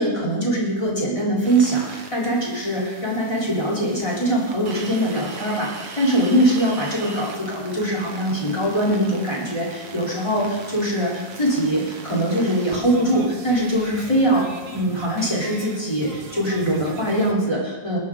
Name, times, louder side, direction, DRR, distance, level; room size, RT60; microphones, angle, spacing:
voice 1, 0.0-14.5 14.7-18.0, right 1 dB, 10° left, -5 dB, 3.5 m, -22 dB
sound 1, 1.4-17.3, right 4 dB, 75° right, 0.8 m, -39 dB
20.5 x 10.5 x 3.9 m, 1.2 s
omnidirectional pair, 3.6 m